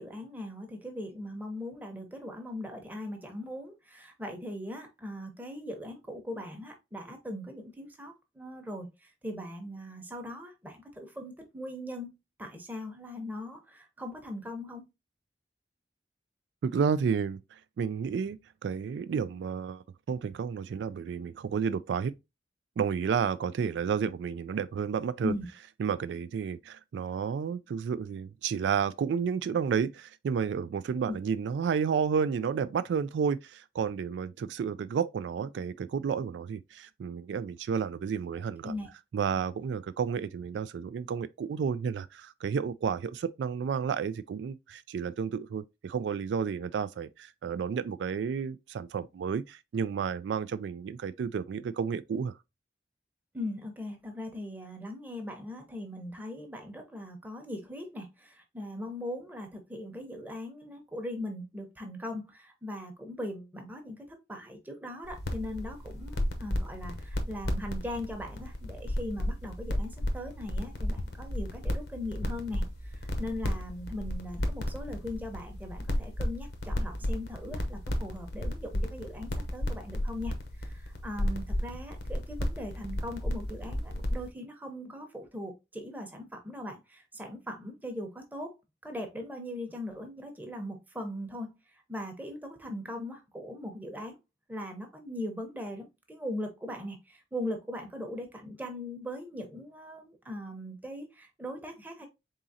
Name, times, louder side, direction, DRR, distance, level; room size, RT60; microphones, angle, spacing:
voice 1, 0.0-12.1 12.4-14.8 25.2-25.5 31.1-31.2 38.6-38.9 53.3-72.6 72.9-88.5 88.8-91.5 91.9-94.2 94.5-102.1, left 1 dB, 10° right, 0.8 m, -40 dB
voice 2, 16.6-18.4 18.6-22.1 22.8-25.3 25.8-38.7 39.1-52.3, right 6 dB, 90° right, 0.3 m, -31 dB
sound 1, 65.0-84.3, left 1 dB, 70° left, 0.8 m, -34 dB
4.0 x 3.7 x 2.7 m
head